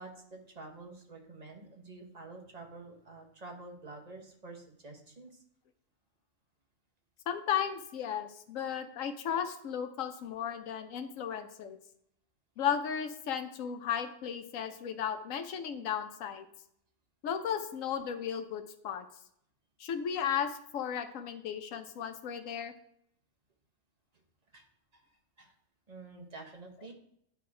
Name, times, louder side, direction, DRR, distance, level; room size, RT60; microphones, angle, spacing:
voice 1, 0.0-5.3 24.5-24.6 24.9-25.0 25.4-25.5 25.9-26.9, right 3 dB, 30° right, 2 dB, 1.2 m, -48 dB
voice 2, 7.3-11.8 12.6-16.4 17.2-19.1 19.8-22.7, left 8 dB, 80° left, 8 dB, 1.1 m, -35 dB
10.0 x 3.5 x 4.7 m, 0.72 s
omnidirectional pair, 1.4 m